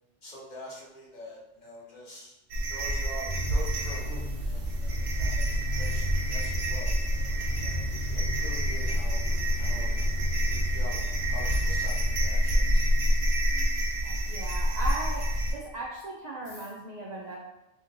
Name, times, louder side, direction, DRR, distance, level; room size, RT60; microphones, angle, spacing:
voice 1, 0.2-2.4 2.7-5.5 5.8-7.8 8.3-9.2 9.6-10.0 10.5-12.9, left 1 dB, 45° left, -5 dB, 0.7 m, -45 dB
sound 1, 2.5-15.5, equal, 70° right, 0.8 m, -28 dB
sound 2, 3.2-13.8, left 1 dB, 90° left, 1.2 m, -37 dB
voice 2, 14.0-17.4, right 2 dB, 85° right, -4 dB, 0.3 m, -37 dB
2.9 x 2.8 x 2.5 m, 0.94 s
omnidirectional pair, 1.3 m